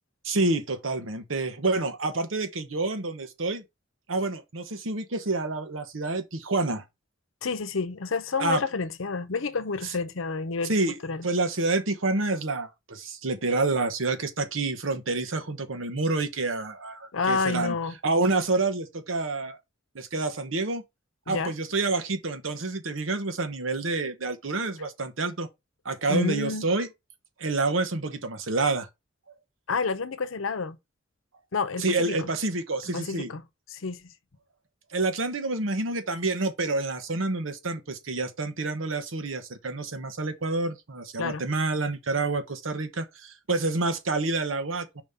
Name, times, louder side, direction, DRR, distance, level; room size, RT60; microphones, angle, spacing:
voice 1, 0.2-3.6 4.1-6.8 8.4-8.6 9.8-9.9 10.7-10.9 11.2-17.7 18.0-19.6 19.9-20.8 21.3-25.5 25.8-26.9 27.4-28.9 31.8-33.3 34.9-45.0, right 3 dB, 80° right, 1.1 m, -28 dB
voice 2, 7.4-10.7 11.0-11.3 17.1-17.9 21.3-21.5 26.1-26.7 29.7-30.8 31.5-32.3 32.9-33.4 33.7-34.1 41.2-41.4, left 4 dB, 85° left, 0.7 m, -29 dB
5.0 x 3.7 x 5.3 m
head